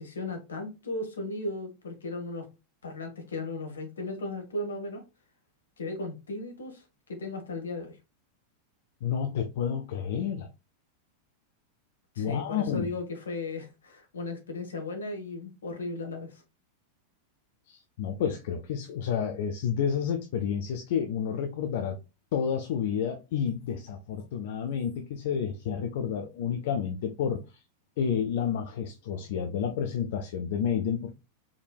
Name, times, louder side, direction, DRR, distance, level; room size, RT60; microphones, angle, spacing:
voice 1, 0.0-2.5 2.8-5.0 5.8-8.0 12.1-16.4, left 2 dB, 70° left, 1.2 m, -36 dB
voice 2, 9.0-10.5 12.2-12.9 17.7-22.0 22.3-27.6 28.0-31.1, left 7 dB, 55° left, 0.5 m, -30 dB
5.0 x 3.3 x 2.3 m
figure-of-eight pair, 90°, 0 cm